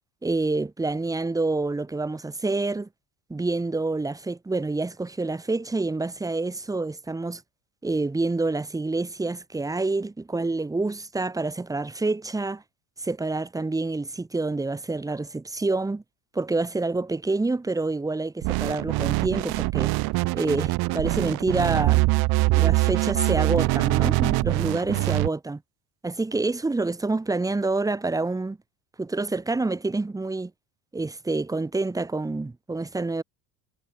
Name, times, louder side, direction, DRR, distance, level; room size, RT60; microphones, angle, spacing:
voice 1, 0.2-2.9 3.3-7.4 7.8-12.6 13.0-16.0 16.3-19.9 20.3-22.2 22.5-25.6 26.0-28.6 29.0-30.5 30.9-33.2, right 3 dB, 10° right, 5.9 m, -27 dB
sound 1, 18.4-25.3, right 23 dB, 60° right, 6.0 m, -23 dB
cardioid pair, 175°, 41 cm